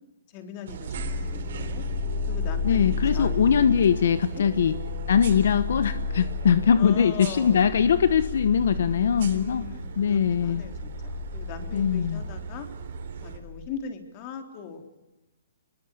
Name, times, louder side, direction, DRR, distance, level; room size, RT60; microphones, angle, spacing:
voice 1, 0.3-1.8 2.3-3.6 4.1-4.4 5.3-5.4 6.8-7.6 8.7-12.7 13.2-15.0, left 7 dB, 30° left, 6 dB, 3.6 m, -40 dB
sound 1, 0.7-13.4, right 6 dB, 55° right, 3.9 m, -38 dB
sound 2, 0.9-13.7, left 6 dB, ahead, 5.1 m, -34 dB
voice 2, 2.6-4.8 5.1-9.6 10.0-10.6 11.7-12.2, left 7 dB, 65° left, 13 dB, 1.1 m, -21 dB
25.5 x 22.0 x 8.5 m, 0.96 s
hypercardioid pair, 160°, 0 cm